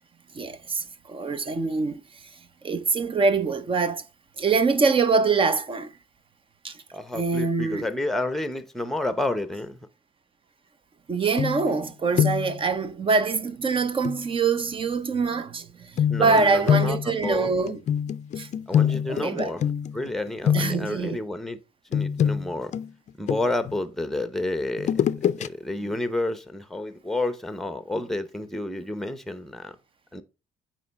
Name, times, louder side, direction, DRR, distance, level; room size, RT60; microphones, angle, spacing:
voice 1, 0.3-2.3 2.6-4.0 4.4-5.9 6.6-6.8 7.1-7.9 11.1-17.8 18.4-18.5 19.1-19.5 20.5-21.2, right 4 dB, 30° right, 0.8 m, -24 dB
voice 2, 6.9-9.8 16.1-17.5 18.7-19.6 19.9-21.6 21.9-22.7 23.2-24.9 25.4-29.8 30.1-30.2, left 2 dB, ahead, 0.9 m, -30 dB
sound 1, 11.4-11.9 12.1-12.6 14.0-14.2 16.0-20.1 20.4-21.0 21.9-23.7 24.8-25.5 25.9-26.0, left 9 dB, 45° left, 0.5 m, -25 dB
9.2 x 3.1 x 5.3 m
cardioid pair, 110°, 17 cm